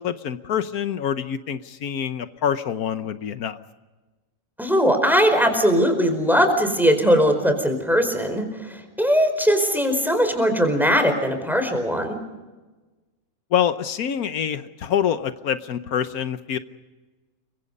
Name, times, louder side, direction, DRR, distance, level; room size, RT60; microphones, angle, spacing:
voice 1, 0.0-3.6 13.5-16.6, left 9 dB, 90° left, 11 dB, 1.5 m, -26 dB
voice 2, 4.6-12.1, equal, ahead, 5 dB, 4.6 m, -20 dB
30.0 x 24.0 x 5.4 m, 1.2 s
omnidirectional pair, 1.5 m